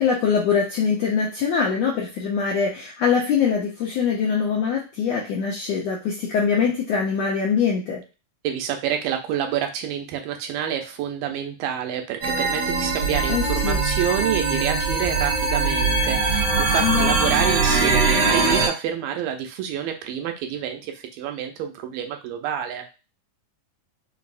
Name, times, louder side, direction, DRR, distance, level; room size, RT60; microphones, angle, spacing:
voice 1, 0.0-8.0 13.3-13.8 16.8-17.2, left 6 dB, 85° left, -3 dB, 1.5 m, -23 dB
voice 2, 8.4-22.9, right 9 dB, 90° right, 4 dB, 2.3 m, -28 dB
sound 1, 12.2-18.7, right 3 dB, 70° right, 1.3 m, -21 dB
5.5 x 2.0 x 2.5 m, 0.30 s
omnidirectional pair, 3.8 m